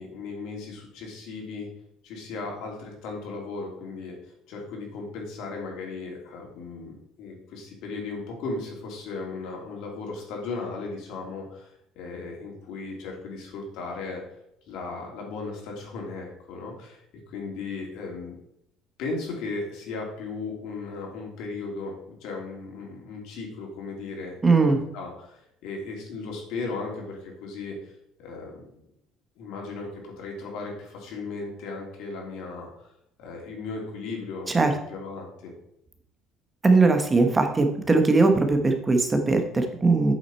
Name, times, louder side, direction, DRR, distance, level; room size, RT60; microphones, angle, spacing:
voice 1, 0.0-1.7 2.0-14.2 14.7-18.4 19.0-27.9 28.2-28.8 29.4-32.9 33.2-35.5, left 3 dB, 65° left, 0 dB, 3.2 m, -36 dB
voice 2, 24.4-24.8 34.5-34.7 36.6-40.1, right 3 dB, 15° right, 5 dB, 1.0 m, -20 dB
8.4 x 7.2 x 4.4 m, 0.76 s
cardioid pair, 170°, 0 cm